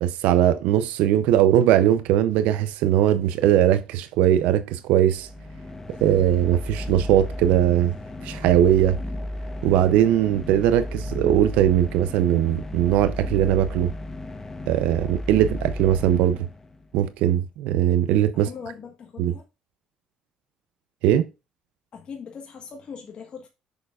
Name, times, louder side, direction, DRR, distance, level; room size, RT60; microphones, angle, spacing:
voice 1, 0.0-5.3 6.0-7.9 8.2-9.0 9.6-13.9 14.7-16.5 16.9-18.5 19.2-19.3 21.0-21.2, right 11 dB, 90° right, 0.5 m, -20 dB
sound 1, 5.1-16.9, left 1 dB, 20° left, 0.9 m, -34 dB
voice 2, 18.3-19.4 21.9-23.5, left 6 dB, 45° left, 1.4 m, -40 dB
6.9 x 6.5 x 2.4 m
cardioid pair, 105°, 2 cm